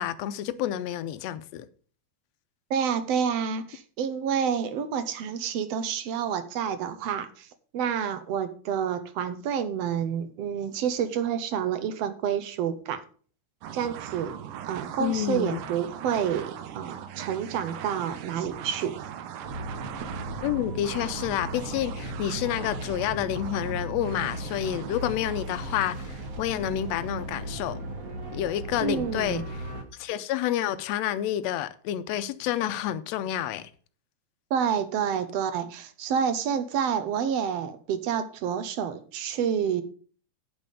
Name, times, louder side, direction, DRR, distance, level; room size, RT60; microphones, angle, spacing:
voice 1, 0.0-1.7 15.0-15.6 20.4-27.8 28.3-29.4 29.9-33.7, left 11 dB, 80° left, 1.6 m, -29 dB
voice 2, 2.7-7.5 7.7-13.0 13.7-14.3 14.6-19.0 28.8-29.4 34.5-39.8, right 8 dB, 70° right, 1.7 m, -28 dB
sound 1, 13.6-27.4, right 9 dB, 85° right, 2.5 m, -41 dB
sound 2, 19.4-29.8, right 1 dB, 45° right, 1.2 m, -37 dB
9.2 x 5.5 x 6.6 m
omnidirectional pair, 3.5 m